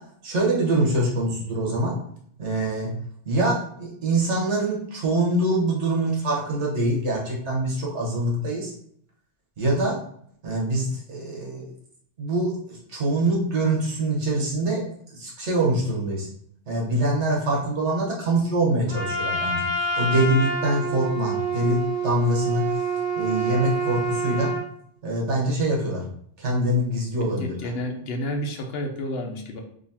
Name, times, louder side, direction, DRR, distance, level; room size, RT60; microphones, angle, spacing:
voice 1, 0.2-2.0 2.4-2.9 3.2-8.7 9.6-9.9 10.4-11.7 12.2-14.8 15.1-16.3 16.7-19.6 20.0-22.6 23.2-24.5 25.0-26.0 26.4-27.6, right 1 dB, 85° right, -3 dB, 1.4 m, -24 dB
Trumpet, 18.9-24.7, right 3 dB, 35° right, 0.9 m, -27 dB
voice 2, 27.4-29.6, left 1 dB, 65° left, 3 dB, 0.8 m, -30 dB
3.8 x 2.8 x 2.8 m, 0.65 s
omnidirectional pair, 1.2 m